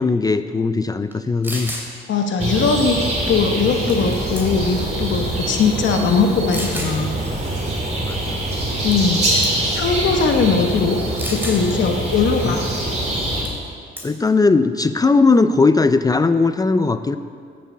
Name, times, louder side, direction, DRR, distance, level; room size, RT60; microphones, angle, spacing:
voice 1, 0.0-1.7 8.1-8.2 12.4-12.6 14.0-17.2, left 3 dB, 20° left, 11 dB, 0.4 m, -18 dB
sound 1, 1.1-1.2 1.4-1.9 3.9-4.1 4.4-4.8 5.5-5.6 6.5-7.0 8.9-9.2 9.4-9.7 11.2-11.6 13.5-13.7 14.0-14.3, equal, 10° right, 2.7 m, -30 dB
voice 2, 2.1-3.0 3.3-7.1 8.8-11.0 11.3-12.6, left 5 dB, 70° left, 4 dB, 1.1 m, -20 dB
sound 2, 2.4-13.4, right 1 dB, 35° right, 3.3 m, -24 dB
9.5 x 7.4 x 8.3 m, 2.1 s
cardioid pair, 90°, 20 cm